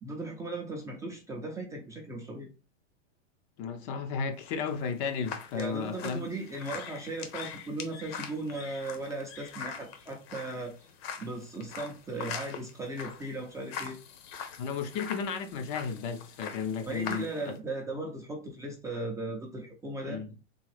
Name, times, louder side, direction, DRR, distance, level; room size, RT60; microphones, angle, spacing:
voice 1, 0.0-2.5 5.5-10.9 11.2-14.0 16.8-20.2, right 2 dB, 10° right, 0.5 m, -37 dB
voice 2, 3.6-6.2 14.6-17.3 20.0-20.3, left 6 dB, 40° left, 0.6 m, -34 dB
sound 1, 4.4-17.6, left 7 dB, 55° left, 1.0 m, -43 dB
3.8 x 3.3 x 3.2 m
supercardioid pair, 135°, 37 cm